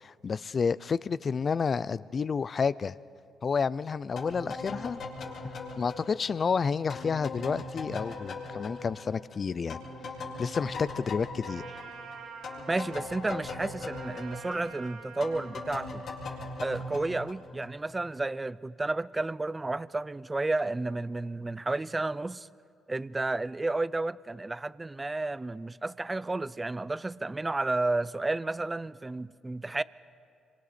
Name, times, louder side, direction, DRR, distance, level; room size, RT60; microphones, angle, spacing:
voice 1, 0.0-2.9 3.4-5.0 5.8-9.8 10.4-11.6, left 5 dB, 40° left, 0.4 m, -30 dB
sound 1, 4.2-9.4 9.7-17.9, left 3 dB, 65° left, 4.6 m, -40 dB
Trumpet, 11.4-15.8, right 5 dB, 85° right, 4.6 m, -47 dB
voice 2, 12.7-16.0 16.6-22.5 22.9-29.8, right 2 dB, 20° right, 0.4 m, -32 dB
26.0 x 24.5 x 4.3 m
cardioid pair, 90°, 0 cm